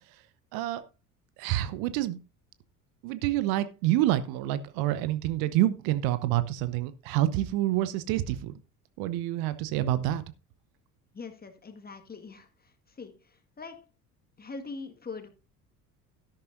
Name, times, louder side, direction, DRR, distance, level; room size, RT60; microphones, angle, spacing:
voice 1, 0.5-0.8 1.4-2.2 3.0-8.5 9.0-10.2, right 14 dB, 50° right, 1.0 m, -27 dB
voice 2, 11.1-12.5 13.0-13.2 13.6-13.8 14.4-15.3, left 4 dB, 20° left, 1.8 m, -41 dB
13.0 x 11.5 x 2.6 m
figure-of-eight pair, 60°, 46 cm